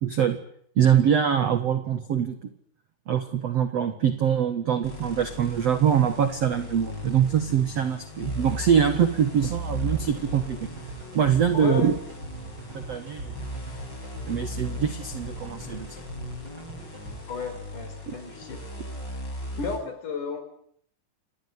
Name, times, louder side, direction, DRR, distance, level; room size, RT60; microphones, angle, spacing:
voice 1, 0.0-0.4 0.8-2.5 3.1-10.7 11.1-11.9 12.7-13.4 14.2-15.9 18.1-18.2, right 8 dB, 55° right, 9 dB, 1.9 m, -23 dB
sound 1, 4.8-19.8, left 1 dB, 25° left, 6.3 m, -38 dB
sound 2, 9.4-17.1, right 3 dB, 25° right, 6.2 m, -40 dB
voice 2, 11.5-11.9 17.3-18.6 19.6-20.4, left 5 dB, 45° left, 8 dB, 6.2 m, -32 dB
27.5 x 19.5 x 9.6 m, 0.66 s
omnidirectional pair, 5.0 m